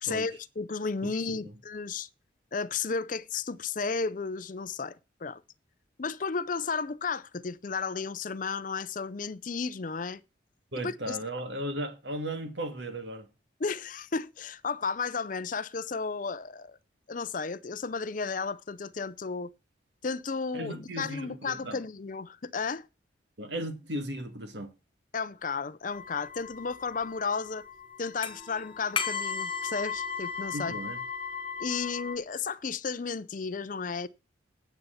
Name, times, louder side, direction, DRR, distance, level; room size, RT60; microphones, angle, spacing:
voice 1, 0.0-2.1 2.5-5.4 6.0-10.2 10.8-11.2 13.6-16.8 17.1-19.5 20.0-22.9 25.1-27.6 28.0-30.7 31.6-34.1, left 5 dB, 40° left, 0.5 m, -33 dB
voice 2, 1.0-1.4 10.7-13.3 20.5-21.8 23.4-24.7 30.5-31.0, right 1 dB, 65° right, 2.2 m, -36 dB
sound 1, 25.9-32.2, left 5 dB, 25° left, 1.3 m, -36 dB
9.3 x 7.8 x 5.7 m
head